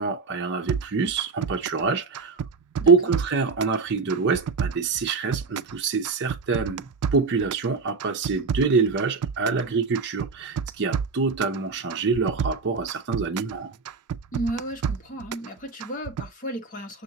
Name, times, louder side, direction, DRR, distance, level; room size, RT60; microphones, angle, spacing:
voice 1, 0.0-2.4 2.9-13.7, right 4 dB, 55° right, 0.7 m, -25 dB
sound 1, 0.7-1.9 2.1-3.8 4.1-5.8 6.0-7.7 8.0-9.7 10.0-11.6 11.9-13.6 13.9-15.5 15.8-16.3, right 7 dB, 90° right, 0.4 m, -30 dB
voice 2, 14.3-17.0, right 1 dB, 40° left, 1.4 m, -33 dB
6.5 x 2.6 x 2.8 m
head